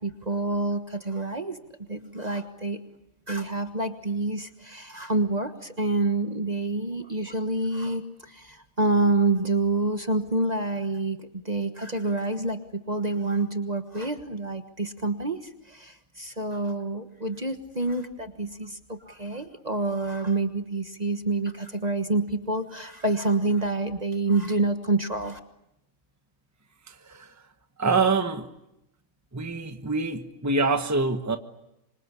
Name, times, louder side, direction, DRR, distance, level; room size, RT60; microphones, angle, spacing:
voice 1, 0.0-1.6 1.9-2.8 3.3-15.4 15.7-25.4, right 2 dB, 30° right, 7 dB, 1.4 m, -27 dB
voice 2, 26.9-27.3 27.8-28.5 29.3-31.4, right 4 dB, 15° right, 7 dB, 1.3 m, -25 dB
26.5 x 25.5 x 8.5 m, 0.86 s
omnidirectional pair, 1.4 m